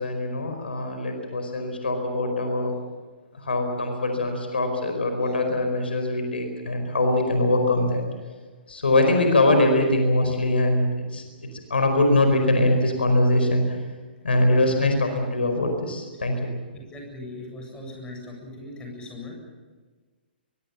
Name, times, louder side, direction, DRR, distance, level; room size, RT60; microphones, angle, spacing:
voice 1, 0.0-2.7 3.3-8.0 8.7-11.2 11.7-13.8 14.2-16.5, left 1 dB, 70° left, 5 dB, 4.8 m, -22 dB
voice 2, 16.7-19.4, left 2 dB, 15° left, 1 dB, 8.0 m, -39 dB
23.5 x 23.0 x 7.1 m, 1.4 s
figure-of-eight pair, 120°, 6 cm